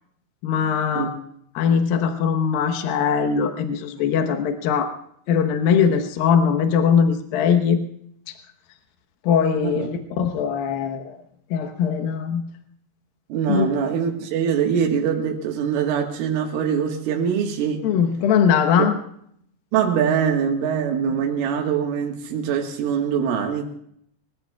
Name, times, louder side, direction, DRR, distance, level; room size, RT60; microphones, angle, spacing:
voice 1, 0.4-1.1 1.6-4.9 5.3-7.8 9.2-11.2 11.5-12.4 13.5-13.7 17.8-19.0, left 7 dB, 75° left, 2.2 m, -20 dB
voice 2, 9.6-9.9 13.3-17.9 19.7-23.6, right 7 dB, 90° right, 4.0 m, -23 dB
29.0 x 16.0 x 2.3 m
omnidirectional pair, 5.5 m